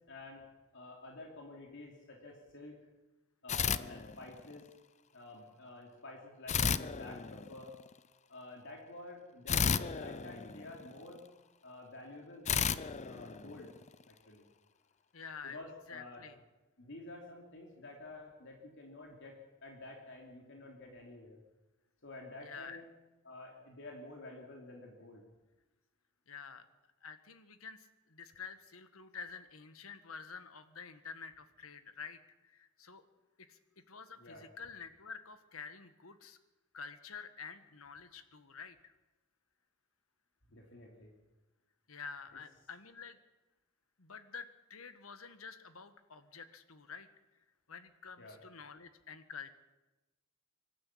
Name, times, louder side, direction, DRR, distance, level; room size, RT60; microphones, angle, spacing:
voice 1, 0.1-0.4 0.7-2.8 3.4-4.7 5.1-7.8 8.3-11.2 11.6-12.7 13.0-13.7 14.1-14.5 15.4-16.3 16.8-21.4 22.0-22.8 23.2-25.2 34.2-34.5 40.5-41.1 48.2-48.4, left 2 dB, 60° left, 0 dB, 3.1 m, -50 dB
sound 1, 3.5-4.6 6.5-7.9 9.5-11.2 12.5-14.0, left 6 dB, 35° left, 0.6 m, -34 dB
voice 2, 15.1-15.6 15.9-16.4 22.4-22.8 26.3-26.7 27.0-33.0 33.4-33.6 33.9-36.4 36.7-38.9 41.9-43.2 44.0-47.1 47.7-49.5, left 5 dB, 80° left, 11 dB, 1.6 m, -49 dB
25.0 x 12.5 x 8.6 m, 1.1 s
head